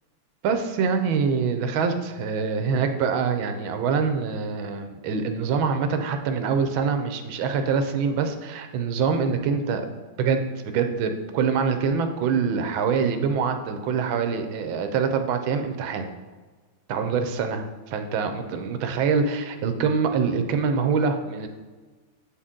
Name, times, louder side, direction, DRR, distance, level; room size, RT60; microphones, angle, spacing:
voice 1, 0.4-9.8 10.2-16.1 16.9-21.5, right 5 dB, 85° right, 7 dB, 1.4 m, -25 dB
8.5 x 4.3 x 3.7 m, 1.3 s
omnidirectional pair, 2.2 m